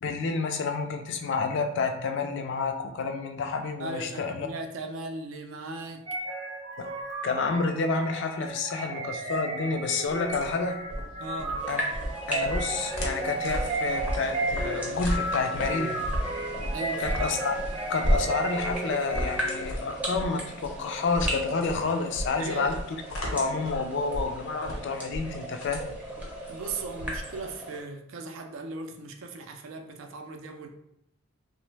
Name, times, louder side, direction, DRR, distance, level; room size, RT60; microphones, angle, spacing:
voice 1, 0.0-4.5 6.8-6.9 7.2-10.8 11.7-11.8 12.3-16.0 17.0-17.6 17.9-22.8 23.3-25.8, left 4 dB, 55° left, 6 dB, 0.3 m, -29 dB
voice 2, 3.8-6.1 11.2-11.6 16.7-17.2 22.4-22.7 26.5-30.7, right 3 dB, 70° right, 5 dB, 0.4 m, -38 dB
sound 1, 6.1-19.7, right 2 dB, 35° right, 0.7 m, -34 dB
sound 2, 10.1-27.5, equal, 90° left, 0.8 m, -34 dB
sound 3, 11.6-27.8, right 1 dB, 5° right, 0.5 m, -38 dB
2.9 x 2.0 x 3.2 m, 0.77 s
head